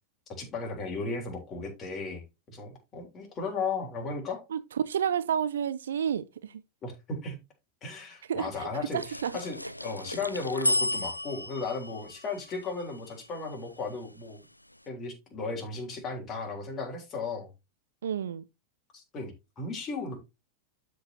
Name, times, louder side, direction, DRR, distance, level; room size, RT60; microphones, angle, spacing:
voice 1, 0.3-4.4 6.8-7.4 7.8-9.0 9.3-14.4 14.9-17.5 18.9-20.2, left 4 dB, 30° left, 3.4 m, -35 dB
voice 2, 4.5-6.6 8.3-9.4 18.0-18.4, right 8 dB, 65° right, 0.5 m, -30 dB
sound 1, 9.0-13.5, left 1 dB, 85° left, 0.4 m, -33 dB
12.0 x 4.7 x 2.8 m
figure-of-eight pair, 90°, 0 cm